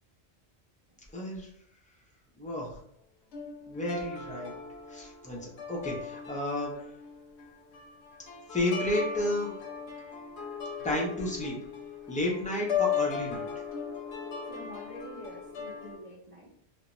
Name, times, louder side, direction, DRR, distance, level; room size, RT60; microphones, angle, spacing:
voice 1, 1.1-1.5 2.4-2.7 3.7-4.5 4.9-6.7 8.5-9.5 10.8-11.6 12.1-13.4, left 1 dB, 10° left, -3 dB, 0.4 m, -31 dB
sound 1, 3.3-16.0, left 7 dB, 80° left, 0.9 m, -37 dB
voice 2, 14.5-16.5, equal, 40° right, -8 dB, 0.7 m, -46 dB
2.5 x 2.2 x 2.9 m, 0.67 s
omnidirectional pair, 1.1 m